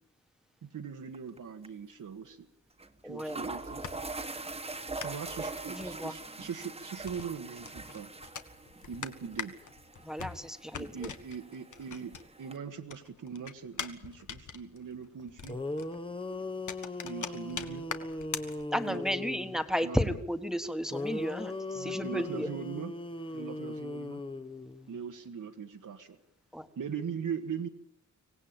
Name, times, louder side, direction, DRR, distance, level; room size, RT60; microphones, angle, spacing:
voice 1, 0.6-2.5 3.0-3.8 5.0-8.1 8.9-9.6 10.7-15.6 17.0-17.8 18.8-19.3 19.8-20.2 21.7-22.9 23.3-24.2 24.9-26.2 26.8-27.7, right 7 dB, 90° right, 4 dB, 1.7 m, -40 dB
sound 1, 1.1-1.4 1.6-1.7 2.8-2.9 3.2-12.6, right 3 dB, 20° right, 1.4 m, -43 dB
voice 2, 3.0-3.4 5.7-6.1 10.0-11.1 18.7-22.5 26.5-26.7, equal, ahead, 8 dB, 1.4 m, -33 dB
sound 2, 3.6-12.6 12.9-19.1, left 6 dB, 75° left, 1.8 m, -43 dB
sound 3, 15.2-15.3 15.5-19.6 20.9-24.9, left 2 dB, 15° left, 1.0 m, -38 dB
25.0 x 18.5 x 8.9 m, 0.77 s
wide cardioid pair, 175°, 31 cm